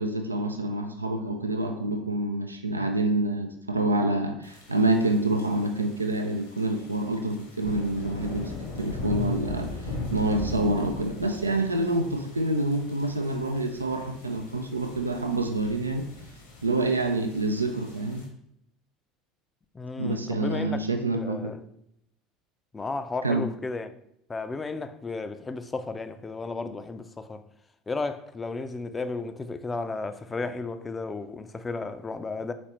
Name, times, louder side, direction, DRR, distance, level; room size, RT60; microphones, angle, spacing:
voice 1, 0.0-16.0 16.6-18.2 20.0-21.5 23.2-23.4, right 2 dB, 85° right, 0.3 m, -27 dB
sound 1, 4.4-18.2, left 3 dB, 70° left, 1.2 m, -39 dB
voice 2, 19.7-20.8 21.1-21.6 22.7-23.9 24.3-27.4 27.9-32.5, left 3 dB, 20° left, 0.4 m, -33 dB
4.1 x 4.1 x 3.0 m
figure-of-eight pair, 65°, 0 cm